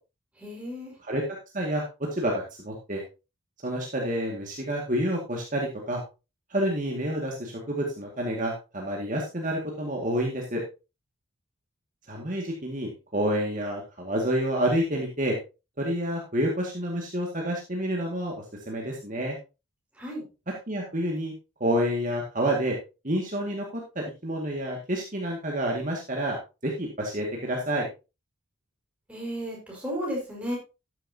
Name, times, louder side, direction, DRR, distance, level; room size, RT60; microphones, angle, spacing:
voice 1, 0.4-0.9 20.0-20.2 29.1-30.6, equal, 5° right, -3 dB, 5.2 m, -33 dB
voice 2, 1.5-1.8 2.1-3.0 3.6-6.0 6.5-10.6 12.1-15.4 15.8-19.4 20.7-21.3 21.6-22.8 23.0-26.4 26.6-27.9, right 1 dB, 35° right, -1 dB, 2.1 m, -29 dB
13.5 x 10.0 x 2.8 m, 0.29 s
head